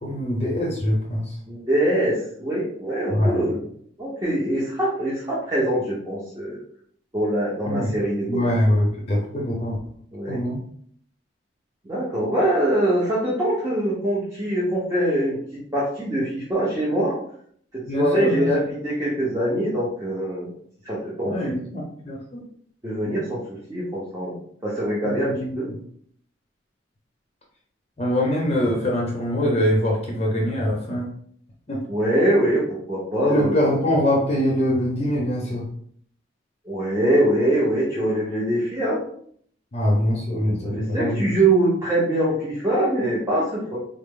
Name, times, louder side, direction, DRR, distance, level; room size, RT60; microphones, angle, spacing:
voice 1, 0.0-1.3 3.1-3.4 7.7-7.9 8.3-9.8 10.3-10.6 17.9-18.5 21.3-22.4 25.0-25.5 28.0-31.0 31.7-31.8 33.2-35.6 39.7-41.2, equal, 35° left, -2 dB, 0.7 m, -23 dB
voice 2, 1.5-3.6 4.0-6.6 7.1-8.4 10.1-10.4 11.8-15.4 15.7-17.2 17.7-20.5 20.8-21.3 22.8-25.3 25.6-25.7 31.9-33.6 36.7-39.0 40.6-43.8, right 1 dB, 20° right, -7 dB, 0.9 m, -23 dB
4.0 x 2.0 x 3.7 m, 0.62 s
head